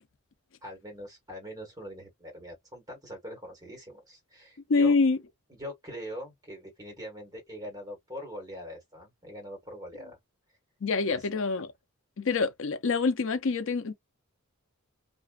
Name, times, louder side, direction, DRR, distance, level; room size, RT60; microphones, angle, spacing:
voice 1, 0.6-4.9 5.5-10.2 11.1-11.3, equal, 15° right, 1.3 m, -42 dB
voice 2, 4.7-5.2 10.8-11.7 12.2-13.9, left 4 dB, 60° left, 0.5 m, -25 dB
2.4 x 2.3 x 2.2 m
head